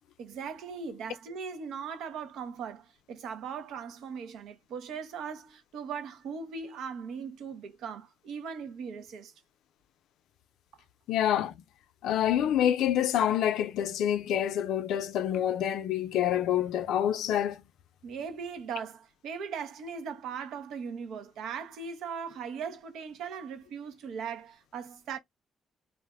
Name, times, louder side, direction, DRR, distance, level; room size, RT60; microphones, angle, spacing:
voice 1, 0.2-9.3 18.0-25.2, right 6 dB, 80° right, 0.7 m, -39 dB
voice 2, 11.1-11.6 12.0-17.6, left 10 dB, 80° left, 0.4 m, -27 dB
2.5 x 2.0 x 3.5 m
cardioid pair, 90°, 0 cm